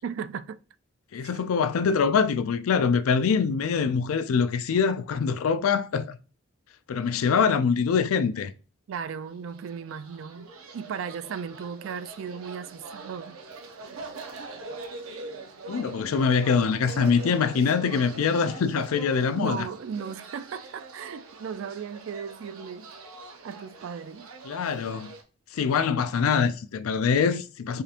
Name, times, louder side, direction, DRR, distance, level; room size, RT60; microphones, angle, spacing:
voice 1, 0.0-0.6 1.2-1.3 8.9-13.4 19.3-22.9 23.4-24.3, right 6 dB, 65° right, 0.3 m, -36 dB
voice 2, 1.1-6.2 6.9-8.5 15.7-19.7 24.5-25.1 25.5-27.8, left 6 dB, 85° left, 0.4 m, -24 dB
sound 1, 9.4-25.2, right 3 dB, 90° right, 0.7 m, -43 dB
5.0 x 2.8 x 2.5 m
head